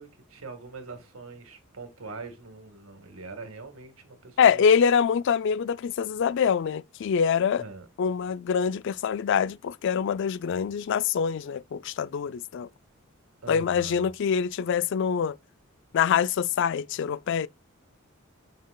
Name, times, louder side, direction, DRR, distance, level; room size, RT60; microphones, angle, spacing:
voice 1, 0.0-4.7 7.6-7.9 13.4-14.1, right 3 dB, 80° right, 1.8 m, -43 dB
voice 2, 4.4-7.6 8.0-12.7 13.5-15.4 15.9-17.5, left 7 dB, 60° left, 0.3 m, -25 dB
6.6 x 6.1 x 2.3 m
head